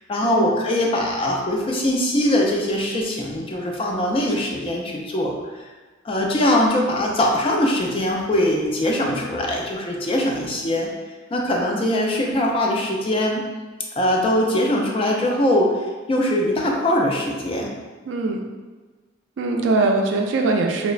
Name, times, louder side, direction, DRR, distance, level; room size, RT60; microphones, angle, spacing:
voice 1, 0.1-5.7 6.0-10.9 11.3-13.5 14.0-15.8 16.1-17.8, left 1 dB, 30° left, 0 dB, 0.3 m, -22 dB
voice 2, 18.1-18.4 19.4-20.9, right 3 dB, 70° right, 2 dB, 0.3 m, -21 dB
3.0 x 2.0 x 2.4 m, 1.3 s
head